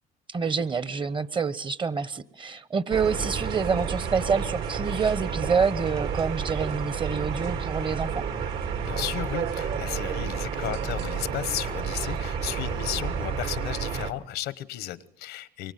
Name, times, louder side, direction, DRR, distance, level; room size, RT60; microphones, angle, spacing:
voice 1, 0.3-8.2, right 5 dB, 30° right, 18 dB, 1.0 m, -27 dB
sound 1, 2.9-14.1, right 6 dB, 70° right, 2.6 m, -30 dB
voice 2, 8.8-15.7, left 14 dB, 85° left, 17 dB, 1.1 m, -34 dB
24.5 x 23.5 x 9.3 m, 0.76 s
cardioid pair, 110°, 17 cm